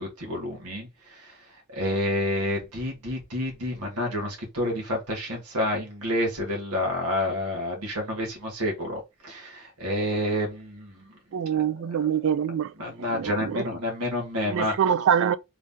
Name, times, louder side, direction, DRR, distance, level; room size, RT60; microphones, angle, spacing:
voice 1, 0.0-1.3 1.7-11.1 11.5-12.1 12.8-14.7, left 1 dB, 85° right, 1.3 m, -29 dB
voice 2, 11.3-12.7 13.1-13.7 14.5-15.4, right 8 dB, 60° right, 0.3 m, -25 dB
3.2 x 2.7 x 3.6 m
head